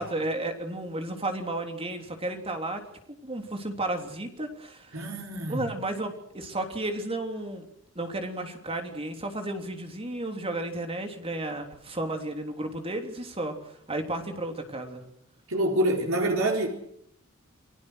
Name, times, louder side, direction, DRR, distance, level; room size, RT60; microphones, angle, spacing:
voice 1, 0.0-2.8 3.1-5.0 5.5-7.6 7.9-15.0, right 2 dB, 30° right, 5 dB, 3.4 m, -33 dB
voice 2, 4.9-5.7 15.5-16.7, right 1 dB, 85° right, 1 dB, 4.5 m, -26 dB
29.0 x 20.0 x 6.5 m, 0.71 s
head